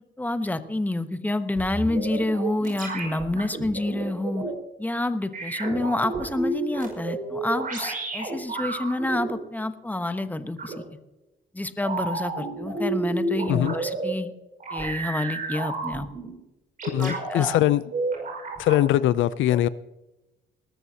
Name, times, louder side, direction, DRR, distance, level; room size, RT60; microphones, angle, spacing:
voice 1, 0.2-4.4 4.8-10.8 11.5-14.3 14.7-16.1 17.0-17.6 19.5-19.6, left 2 dB, 10° left, 10 dB, 1.0 m, -28 dB
sound 1, 1.6-4.5 5.3-9.3 10.6-10.8 11.8-14.1 14.6-16.3 16.8-17.6 17.9-18.8, right 3 dB, 45° right, 5.3 m, -31 dB
voice 2, 16.9-17.8 18.6-19.7, left 13 dB, 80° left, 17 dB, 0.5 m, -21 dB
19.5 x 13.5 x 2.8 m, 0.98 s
cardioid pair, 90°, 20 cm